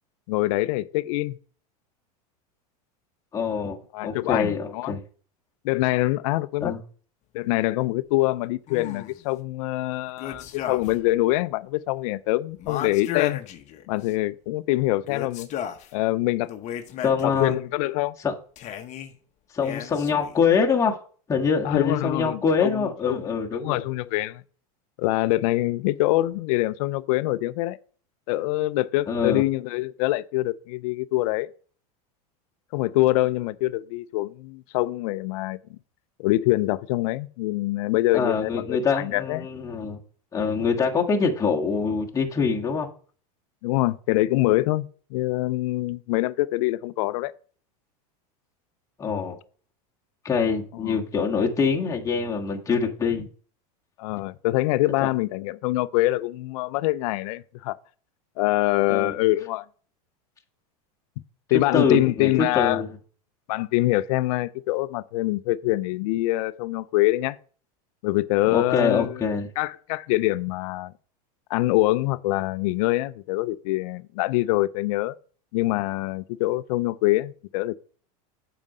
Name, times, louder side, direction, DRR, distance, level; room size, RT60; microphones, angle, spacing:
voice 1, 0.3-1.4 3.9-5.0 5.6-6.7 7.3-13.4 13.9-15.5 15.9-16.5 17.2-18.2 21.6-24.4 25.0-27.8 28.3-31.5 32.7-35.8 36.2-39.5 43.6-47.3 50.8-51.0 54.0-57.8 58.4-59.7 61.5-62.8 63.5-67.4 68.0-69.2 69.6-70.9 71.5-75.2 75.5-77.7, left 18 dB, 65° left, 0.5 m, -24 dB
voice 2, 3.3-5.0 6.6-6.8 17.0-17.6 18.2-18.3 19.5-21.0 21.3-23.8 29.1-29.4 38.1-40.0 40.3-42.9 49.0-49.4 50.2-53.2 58.9-59.2 61.7-62.9 68.5-69.5, left 5 dB, 15° left, 1.5 m, -24 dB
sound 1, 8.7-9.2 10.2-11.1 11.4-11.5 12.6-14.1 15.0-15.9 16.4-17.5 18.6-19.1 19.6-20.4, left 10 dB, 35° left, 1.0 m, -34 dB
7.3 x 5.1 x 5.4 m
supercardioid pair, 125°, 20 cm